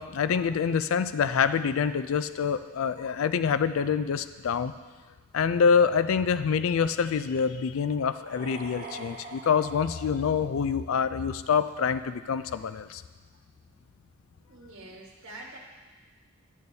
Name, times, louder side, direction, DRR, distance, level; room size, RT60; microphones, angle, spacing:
voice 1, 0.0-4.7 5.3-13.0, left 6 dB, 75° left, 12 dB, 0.4 m, -26 dB
sound 1, 8.1-11.1, right 3 dB, 45° right, 1.2 m, -44 dB
voice 2, 14.5-15.6, right 2 dB, 65° right, -3 dB, 1.2 m, -45 dB
11.0 x 8.7 x 2.7 m, 1.3 s
head